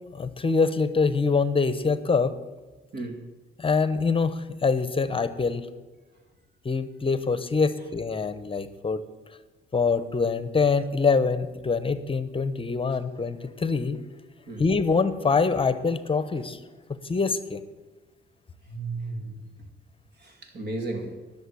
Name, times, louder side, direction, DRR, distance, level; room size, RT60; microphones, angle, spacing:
voice 1, 0.1-2.4 3.6-5.7 6.6-9.0 9.7-14.0 14.6-16.6 17.0-17.6, left 4 dB, 25° left, 13 dB, 0.9 m, -24 dB
voice 2, 2.9-3.3 14.5-14.7 18.7-19.5 20.2-21.2, right 2 dB, 55° right, 5 dB, 2.5 m, -34 dB
11.0 x 6.9 x 9.6 m, 1.2 s
cardioid pair, 90°, 20 cm